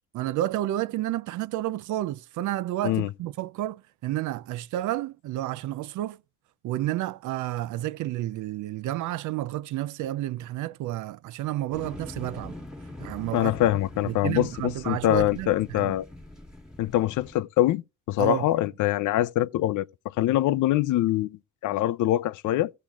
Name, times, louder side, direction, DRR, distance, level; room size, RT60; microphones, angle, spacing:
voice 1, 0.1-6.2 6.6-12.6 13.0-13.6 14.0-15.9 18.2-18.5, right 14 dB, 80° right, 0.5 m, -30 dB
sound 1, 11.7-17.4, left 1 dB, ahead, 1.5 m, -43 dB
voice 2, 13.3-16.0 16.8-17.8 18.1-19.9 20.2-22.7, left 14 dB, 80° left, 0.5 m, -24 dB
16.0 x 7.3 x 2.4 m
cardioid pair, 90°, 30 cm